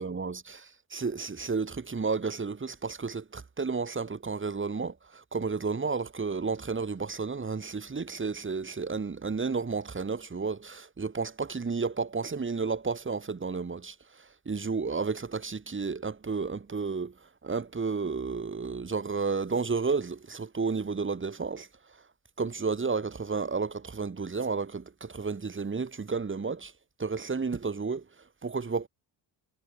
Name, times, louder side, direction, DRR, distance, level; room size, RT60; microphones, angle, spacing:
voice 1, 0.0-21.7 22.4-26.7 27.0-28.0 28.4-28.9, right 4 dB, 25° right, 3.4 m, -32 dB
cardioid pair, 80°, 45 cm